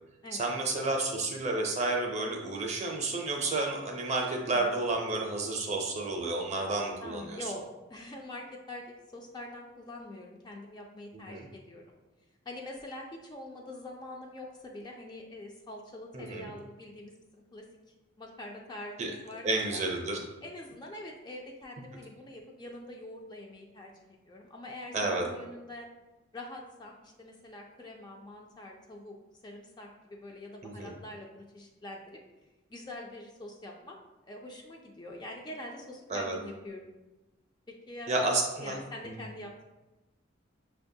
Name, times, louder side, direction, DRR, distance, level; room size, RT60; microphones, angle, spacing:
voice 1, 0.3-7.4 11.1-11.5 16.1-16.5 19.0-19.1 19.4-20.2 24.9-25.2 30.6-30.9 36.1-36.4 38.1-38.8 39.0-39.2, right 2 dB, 35° right, 1 dB, 0.5 m, -31 dB
voice 2, 7.0-7.6 7.9-8.9 9.1-11.8 12.5-17.7 18.2-19.8 20.4-25.9 26.3-29.2 29.4-32.2 32.7-34.0 34.3-36.8 37.7-38.3 38.6-39.6, left 1 dB, 20° left, 0 dB, 0.3 m, -44 dB
6.2 x 2.2 x 2.6 m, 1.1 s
head